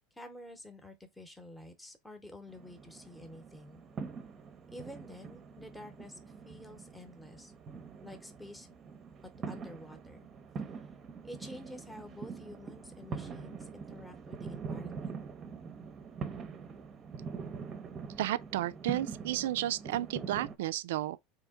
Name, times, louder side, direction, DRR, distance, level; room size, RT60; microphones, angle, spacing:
voice 1, 0.1-3.8 4.7-7.5 8.0-8.8 9.2-10.3 11.2-15.1, left 1 dB, 5° left, 0.9 m, -49 dB
sound 1, 2.5-20.6, right 5 dB, 35° right, 0.7 m, -44 dB
voice 2, 18.2-21.2, right 13 dB, 80° right, 0.3 m, -32 dB
3.6 x 2.9 x 3.5 m
supercardioid pair, 105°, 0 cm